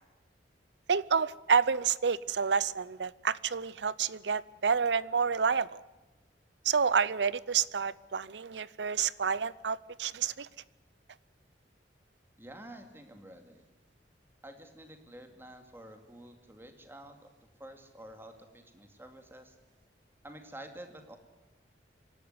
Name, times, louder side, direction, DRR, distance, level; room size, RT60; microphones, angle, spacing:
voice 1, 0.9-5.8 6.6-10.5, right 6 dB, 75° right, 20 dB, 0.6 m, -29 dB
voice 2, 12.4-13.6 14.4-19.6 20.2-21.2, right 1 dB, 15° right, 6 dB, 2.4 m, -49 dB
25.0 x 12.0 x 9.6 m, 1.1 s
head